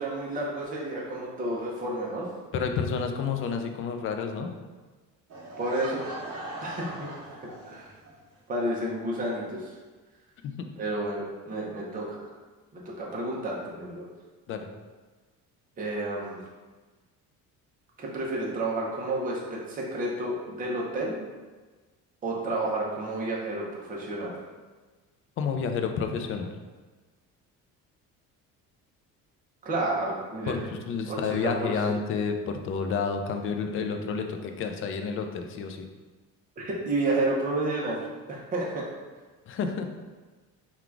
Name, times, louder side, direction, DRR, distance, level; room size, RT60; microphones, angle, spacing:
voice 1, 0.0-2.3 5.6-6.0 6.6-7.4 7.7-7.9 8.5-9.7 10.8-12.3 12.7-14.1 15.8-16.4 18.0-21.2 22.2-24.3 29.6-30.5 31.1-31.8 36.6-38.8, right 2 dB, 25° right, -4 dB, 0.8 m, -31 dB
voice 2, 2.5-4.5 10.4-10.7 14.5-14.7 25.4-26.5 30.5-35.9 39.5-39.9, left 5 dB, 40° left, 5 dB, 0.4 m, -30 dB
Laughter / Crowd, 5.3-8.1, right 1 dB, 50° right, 1.1 m, -40 dB
3.8 x 2.4 x 4.5 m, 1.3 s
cardioid pair, 155°, 35 cm